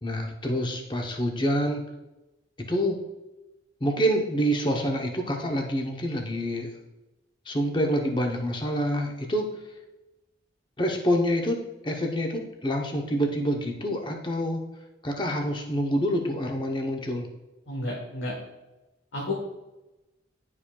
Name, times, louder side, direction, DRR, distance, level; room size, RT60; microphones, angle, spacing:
voice 1, 0.0-1.8 2.7-3.0 3.8-6.7 7.5-9.5 10.8-11.6 11.8-14.6 15.0-17.3, equal, 25° left, 2 dB, 0.7 m, -27 dB
voice 2, 17.7-18.3 19.1-19.3, left 2 dB, 80° left, -3 dB, 1.1 m, -31 dB
10.0 x 4.9 x 2.2 m, 1.0 s
head